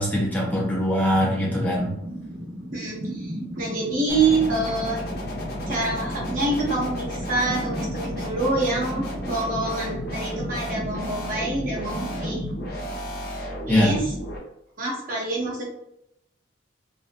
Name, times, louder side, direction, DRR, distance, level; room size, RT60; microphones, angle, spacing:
voice 1, 0.0-1.9 13.7-13.9, equal, 10° left, -5 dB, 0.5 m, -22 dB
sound 1, 1.1-13.8, right 1 dB, 70° right, 1.1 m, -36 dB
voice 2, 2.7-5.0 5.7-12.4 13.7-14.0 14.8-15.7, right 2 dB, 45° right, -3 dB, 0.7 m, -26 dB
sound 2, 4.1-14.4, left 1 dB, 55° left, 0.6 m, -33 dB
2.4 x 2.0 x 2.5 m, 0.78 s
head